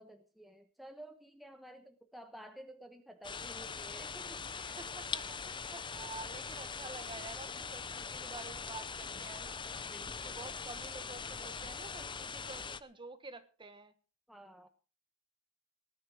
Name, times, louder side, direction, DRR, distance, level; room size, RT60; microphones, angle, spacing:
voice 1, 0.0-4.8 9.9-10.5 14.3-14.7, right 1 dB, ahead, 5 dB, 1.1 m, -53 dB
sound 1, 3.2-12.8, left 5 dB, 20° left, 0.7 m, -42 dB
voice 2, 4.8-9.6 10.1-13.9, right 3 dB, 25° right, 11 dB, 1.4 m, -49 dB
19.0 x 10.0 x 5.0 m, 0.36 s
head